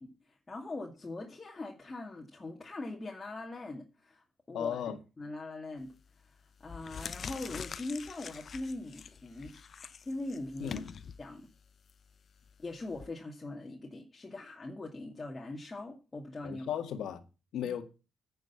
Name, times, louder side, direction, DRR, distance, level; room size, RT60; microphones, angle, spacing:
voice 1, 0.5-4.8 5.2-5.9 6.6-9.5 10.0-10.8 11.2-11.5 12.6-16.7 17.6-17.7, left 2 dB, 25° left, 2.3 m, -41 dB
voice 2, 4.5-5.0 10.6-10.9 16.4-17.2 17.5-17.8, left 9 dB, 75° left, 1.7 m, -35 dB
sound 1, 5.8-6.1 6.6-13.1, left 6 dB, 45° left, 0.8 m, -45 dB
9.6 x 6.8 x 8.3 m
cardioid pair, 90°, 0 cm